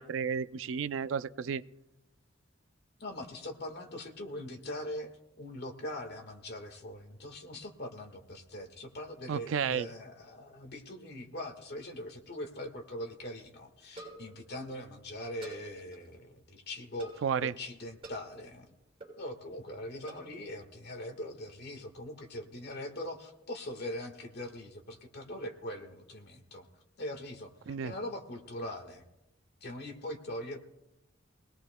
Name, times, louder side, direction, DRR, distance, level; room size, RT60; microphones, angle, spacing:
voice 1, 0.0-1.6 9.3-9.9 17.2-17.5 27.7-27.9, right 7 dB, 75° right, 15 dB, 0.4 m, -32 dB
voice 2, 3.0-5.1 5.4-18.7 19.2-26.7 27.0-29.0 29.6-30.6, left 1 dB, 60° left, 5 dB, 1.5 m, -42 dB
sound 1, 11.7-12.2 12.5-12.6 12.7-12.8 13.9-14.4 15.4-16.2 17.0-17.3 18.0-18.3 19.0-19.2 20.1-20.4, right 2 dB, 30° right, 6.3 m, -48 dB
23.5 x 18.0 x 2.2 m, 0.98 s
head